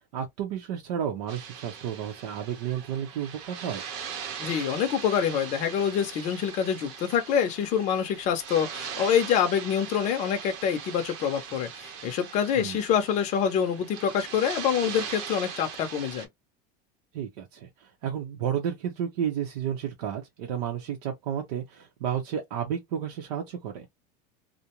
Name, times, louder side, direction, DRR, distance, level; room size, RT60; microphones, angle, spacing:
voice 1, 0.0-3.8 12.5-12.8 17.1-23.9, right 9 dB, 85° right, 0.7 m, -32 dB
sound 1, 1.3-16.3, right 7 dB, 55° right, 0.8 m, -40 dB
voice 2, 4.4-16.3, left 8 dB, 35° left, 0.6 m, -26 dB
2.5 x 2.1 x 2.9 m
supercardioid pair, 160°, 20 cm